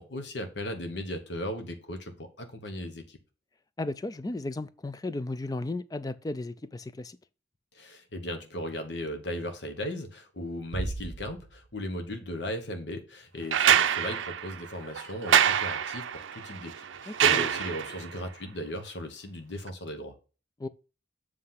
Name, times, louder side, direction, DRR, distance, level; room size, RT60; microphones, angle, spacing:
voice 1, 0.0-3.2 7.7-20.1, left 1 dB, 65° left, 1.1 m, -37 dB
voice 2, 3.8-7.2 17.1-17.5 20.6-20.7, left 2 dB, 20° left, 0.3 m, -34 dB
Bass drum, 10.7-12.2, right 2 dB, 60° right, 0.8 m, -37 dB
sound 1, 13.5-18.1 19.7-19.8, right 9 dB, 85° right, 0.5 m, -26 dB
7.6 x 3.2 x 5.6 m
head